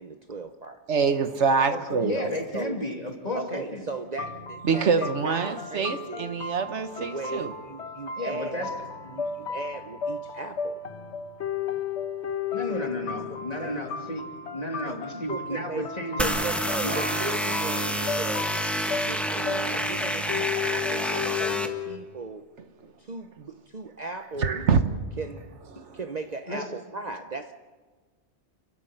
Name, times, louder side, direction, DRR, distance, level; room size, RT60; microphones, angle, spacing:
voice 1, 0.0-0.9 2.1-2.8 3.3-6.4 7.0-8.7 9.1-10.8 12.7-12.9 13.6-13.8 14.9-15.0 15.3-15.9 16.2-18.5 19.1-22.5 23.0-24.6 25.2-25.6 25.9-27.5, right 4 dB, 40° right, 6 dB, 0.9 m, -37 dB
voice 2, 0.9-2.2 4.6-7.5 24.4-24.8 25.7-26.0, right 5 dB, 90° right, 9 dB, 1.5 m, -25 dB
voice 3, 1.7-3.9 8.2-8.7 9.0-9.1 12.5-14.2 14.5-16.3 16.8-17.0 24.5-24.6 26.5-26.6, left 1 dB, 35° left, 1 dB, 3.0 m, -33 dB
sound 1, 4.2-22.0, left 6 dB, 75° left, 1.5 m, -34 dB
sound 2, 16.2-21.7, equal, ahead, 1.5 m, -28 dB
29.5 x 13.0 x 8.0 m, 1.4 s
omnidirectional pair, 1.2 m